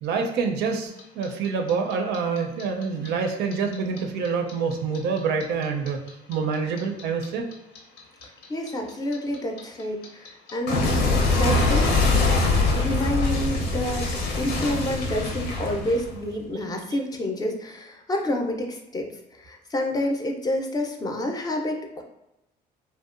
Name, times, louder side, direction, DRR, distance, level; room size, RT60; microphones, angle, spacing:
voice 1, 0.0-6.0 6.3-7.4 16.9-17.0, right 5 dB, 85° right, 4 dB, 0.5 m, -26 dB
Clock, 1.0-4.0 4.3-7.2 7.5-16.4, left 3 dB, 80° left, 0.6 m, -23 dB
voice 2, 8.5-12.0 12.7-14.1 14.4-22.0, left 1 dB, 25° left, 3 dB, 0.4 m, -29 dB
2.7 x 2.1 x 2.4 m, 0.91 s
cardioid pair, 110°, 17 cm